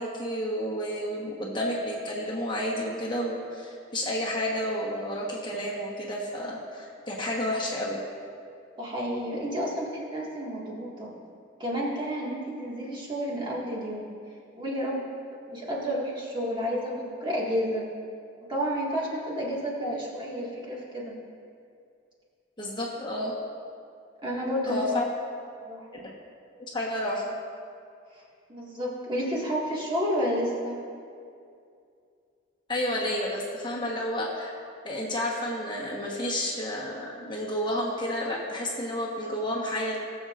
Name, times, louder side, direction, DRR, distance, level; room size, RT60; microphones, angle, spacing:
voice 1, 0.0-8.0 19.8-20.1 22.6-23.3 24.7-25.1 26.0-26.1 26.7-27.3 32.7-34.5 34.8-40.0, left 1 dB, 25° left, -3 dB, 1.2 m, -31 dB
voice 2, 8.8-11.1 11.6-14.1 14.5-15.0 15.5-17.9 18.5-21.1 24.2-24.8 25.6-25.8 28.5-30.8, equal, 25° right, -5 dB, 1.9 m, -30 dB
19.5 x 7.1 x 2.5 m, 2.4 s
head